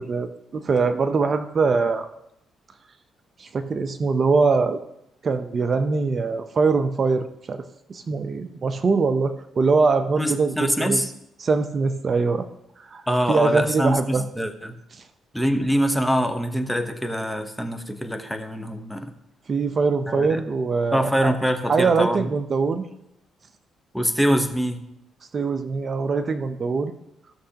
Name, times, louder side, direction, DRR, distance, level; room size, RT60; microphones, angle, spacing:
voice 1, 0.0-2.1 3.4-4.8 5.2-7.6 7.9-11.0 11.4-12.5 12.8-14.2 19.5-21.4 21.7-22.8 25.3-26.9, right 4 dB, 40° right, 9 dB, 0.6 m, -22 dB
voice 2, 10.2-11.1 13.1-14.7 15.3-19.1 20.1-20.4 20.9-22.3 23.9-24.8, equal, ahead, 6 dB, 0.9 m, -24 dB
15.5 x 6.3 x 2.9 m, 0.81 s
cardioid pair, 90°, 0 cm